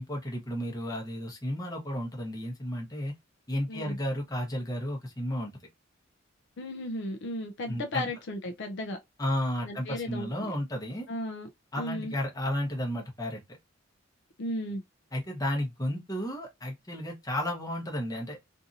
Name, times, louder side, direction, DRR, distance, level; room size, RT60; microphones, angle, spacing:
voice 1, 0.0-3.1 3.5-5.5 7.7-8.1 9.2-11.1 11.7-13.4 15.1-18.4, left 1 dB, 20° left, 0.9 m, -33 dB
voice 2, 6.6-9.0 9.6-10.5 11.1-11.5 11.8-12.1 14.4-14.8, left 1 dB, 60° left, 0.5 m, -35 dB
2.8 x 2.6 x 2.4 m
head